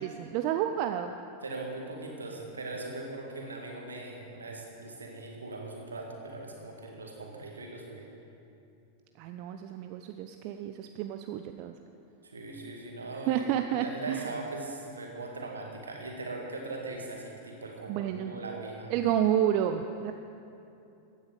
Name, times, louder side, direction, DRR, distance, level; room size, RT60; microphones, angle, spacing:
voice 1, 0.0-1.1 9.2-11.7 13.3-14.3 17.9-18.4 18.9-20.1, right 10 dB, 45° right, 7 dB, 0.5 m, -30 dB
voice 2, 1.4-8.1 12.2-13.5 13.8-18.9, right 2 dB, 75° right, 0 dB, 2.0 m, -40 dB
15.5 x 9.6 x 5.1 m, 2.7 s
figure-of-eight pair, 90°, 0 cm